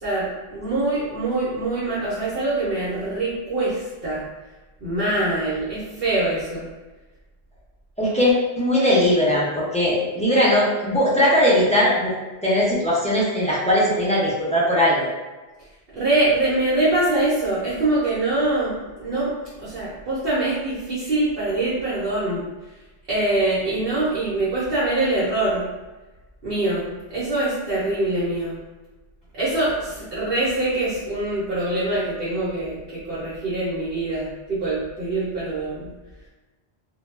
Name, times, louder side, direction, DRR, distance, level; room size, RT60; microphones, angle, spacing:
voice 1, 0.0-4.2 4.8-6.7 15.9-22.4 23.1-25.7 26.4-28.6 29.3-35.9, right 2 dB, 60° right, -9 dB, 0.9 m, -24 dB
voice 2, 8.0-12.1 12.4-15.1, left 1 dB, 10° left, -8 dB, 0.4 m, -19 dB
2.2 x 2.0 x 3.1 m, 1.2 s
omnidirectional pair, 1.1 m